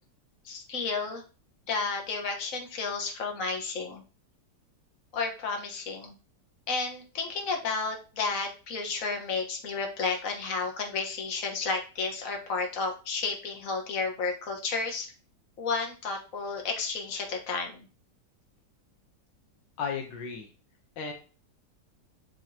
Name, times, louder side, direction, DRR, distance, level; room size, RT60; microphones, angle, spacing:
voice 1, 0.4-1.2 1.7-4.0 5.1-6.1 6.7-15.1 15.6-17.9, left 4 dB, 50° left, 2 dB, 1.7 m, -32 dB
voice 2, 19.8-20.5 21.0-21.1, left 6 dB, 85° left, 4 dB, 1.7 m, -34 dB
7.5 x 5.4 x 2.9 m, 0.35 s
omnidirectional pair, 1.9 m